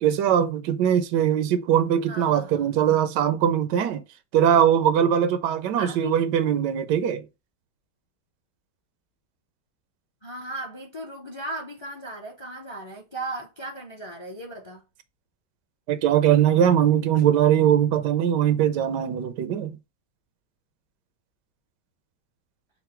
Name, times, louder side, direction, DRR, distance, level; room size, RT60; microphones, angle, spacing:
voice 1, 0.0-4.0 4.3-7.2 15.9-19.8, right 9 dB, 85° right, 1.2 m, -21 dB
voice 2, 2.1-2.7 5.8-6.1 10.2-14.8, right 1 dB, 30° left, 0.5 m, -36 dB
5.7 x 2.1 x 4.3 m
omnidirectional pair, 1.8 m